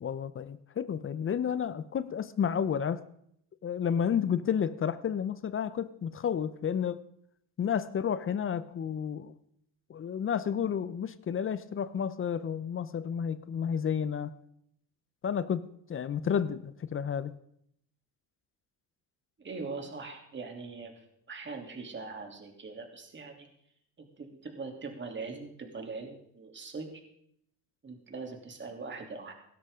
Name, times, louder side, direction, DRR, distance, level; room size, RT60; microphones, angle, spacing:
voice 1, 0.0-3.0 3.6-7.0 7.6-9.3 9.9-14.3 15.2-17.3, left 8 dB, 35° left, 15 dB, 0.7 m, -31 dB
voice 2, 19.4-23.5 24.0-27.0 27.8-29.3, right 4 dB, 30° right, 2 dB, 3.1 m, -41 dB
17.0 x 12.5 x 3.7 m, 0.71 s
supercardioid pair, 90°, 37 cm